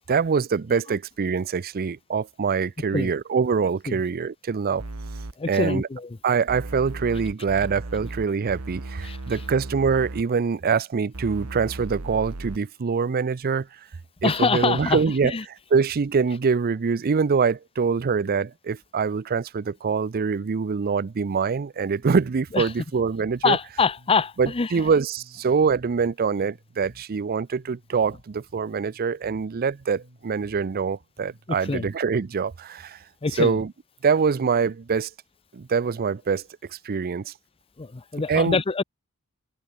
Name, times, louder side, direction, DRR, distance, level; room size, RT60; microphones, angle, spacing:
voice 1, 0.1-4.8 5.5-5.9 6.2-13.7 14.2-23.6 24.4-33.0 33.4-33.7 34.0-35.1 35.5-36.4 36.7-37.3 38.3-38.6, right 5 dB, 45° right, 0.5 m, -24 dB
sound 1, 4.8-5.3 6.5-10.2 11.1-12.6, right 2 dB, 85° right, 1.7 m, -36 dB
voice 2, 5.4-6.2 9.0-9.2 14.2-15.4 22.5-22.7 23.4-24.7 31.5-31.9 33.2-33.6 37.8-38.8, left 4 dB, 25° left, 0.6 m, -25 dB
Bass guitar, 22.7-31.6, equal, 60° right, 7.3 m, -54 dB
head